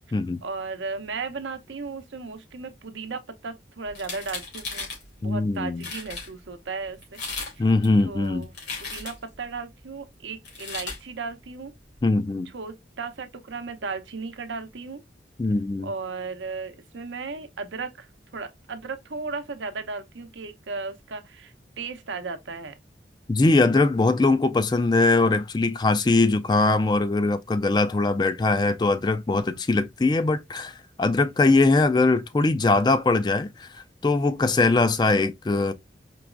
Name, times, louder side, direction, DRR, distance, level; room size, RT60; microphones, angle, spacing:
voice 1, 0.4-4.9 5.2-7.2 7.6-7.7 8.0-8.5 8.8-11.7 12.5-15.0 15.8-22.8 26.5-26.7 31.2-31.3 34.5-34.8, right 4 dB, 90° right, 0.7 m, -35 dB
sound 1, 3.9-5.0 5.5-5.6 5.8-6.3 7.0-7.5 7.8-9.3 10.4-11.0, left 4 dB, 75° left, 2.3 m, -35 dB
voice 2, 5.2-5.8 7.6-8.5 12.0-12.5 15.4-15.9 23.3-35.7, left 3 dB, 25° left, 0.3 m, -21 dB
4.6 x 3.0 x 2.4 m
head